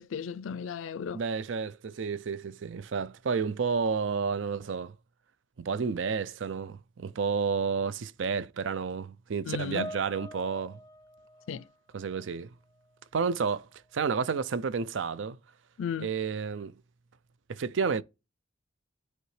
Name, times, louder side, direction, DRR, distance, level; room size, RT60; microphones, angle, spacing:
voice 1, 0.0-1.2 9.5-9.9 11.5-11.6 15.8-16.1, left 6 dB, 80° left, 0.4 m, -35 dB
voice 2, 1.1-4.9 5.6-10.8 11.9-12.5 13.1-15.4 16.0-16.7 17.5-18.0, right 5 dB, 70° right, 0.5 m, -31 dB
Piano, 9.8-12.4 12.7-13.0 13.8-13.9, left 1 dB, 15° left, 0.4 m, -45 dB
9.4 x 3.2 x 3.2 m
head